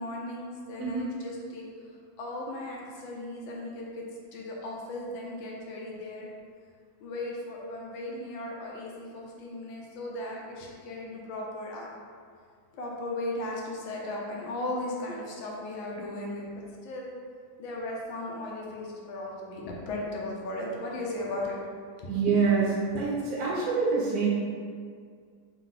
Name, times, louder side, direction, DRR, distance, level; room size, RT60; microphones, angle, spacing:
voice 1, 0.0-1.6 2.2-4.0 4.3-6.3 7.0-11.9 12.7-17.1 17.6-21.6 22.0-22.4, left 1 dB, 75° left, -2 dB, 1.4 m, -36 dB
voice 2, 22.1-22.6 23.0-24.3, right 5 dB, 60° right, -5 dB, 1.2 m, -26 dB
3.7 x 2.9 x 3.7 m, 2.1 s
omnidirectional pair, 2.2 m